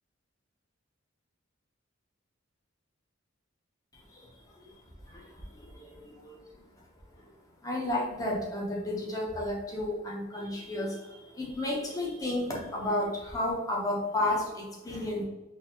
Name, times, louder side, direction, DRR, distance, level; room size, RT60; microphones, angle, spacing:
voice 1, 3.9-4.7 5.0-6.4 7.2-7.3 7.6-15.2, left 1 dB, 15° left, -2 dB, 0.7 m, -33 dB
4.0 x 2.6 x 2.8 m, 1.1 s
head